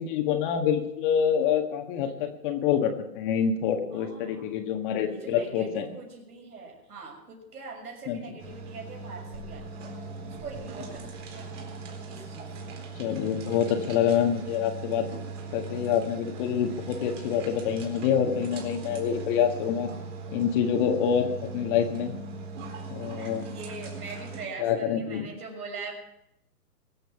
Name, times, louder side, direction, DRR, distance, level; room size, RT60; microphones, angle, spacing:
voice 1, 0.0-5.9 8.1-8.2 13.0-15.0 15.5-19.9 20.3-22.1 22.9-23.5 24.6-25.3, left 8 dB, 30° left, 4 dB, 1.8 m, -26 dB
voice 2, 3.9-4.5 5.1-9.8 10.2-11.5 12.1-12.6 23.2-25.9, right 4 dB, 70° right, 1 dB, 6.2 m, -42 dB
sound 1, 8.4-24.4, right 3 dB, 50° right, 4.2 m, -39 dB
23.0 x 7.9 x 6.0 m, 0.85 s
hypercardioid pair, 135°, 47 cm